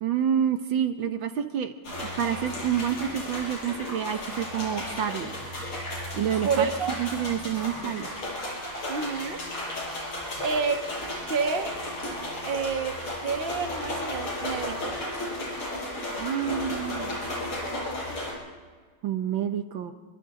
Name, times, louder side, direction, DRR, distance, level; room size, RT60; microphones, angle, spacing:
voice 1, 0.0-1.7 2.0-5.3 6.1-6.7 7.0-8.1 16.2-17.3 19.0-19.9, right 9 dB, 70° right, 7 dB, 1.7 m, -28 dB
sound 1, 1.8-18.3, left 1 dB, 80° left, 7.3 m, -34 dB
voice 2, 6.4-6.9 8.9-9.4 10.4-10.9 11.3-11.8 12.4-15.0, right 5 dB, 30° right, 4 dB, 1.4 m, -29 dB
29.0 x 25.0 x 3.8 m, 1.5 s
omnidirectional pair, 2.3 m